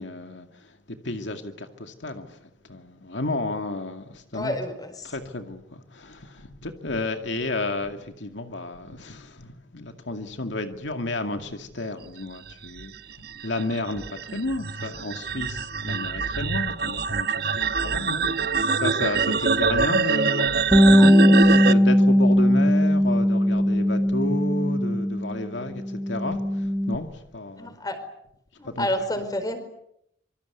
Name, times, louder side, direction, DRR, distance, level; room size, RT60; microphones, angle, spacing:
voice 1, 0.0-4.6 5.0-27.8 28.6-28.9, left 2 dB, 80° left, 2.3 m, -32 dB
voice 2, 4.3-5.1 19.3-19.7 21.0-21.1 27.6-28.0 28.6-29.6, left 1 dB, 20° left, 4.6 m, -30 dB
sound 1, 12.5-21.7, right 5 dB, 55° right, 1.0 m, -25 dB
Bass guitar, 20.7-25.4 25.7-27.0, equal, 5° right, 1.1 m, -19 dB
26.5 x 24.5 x 8.2 m
head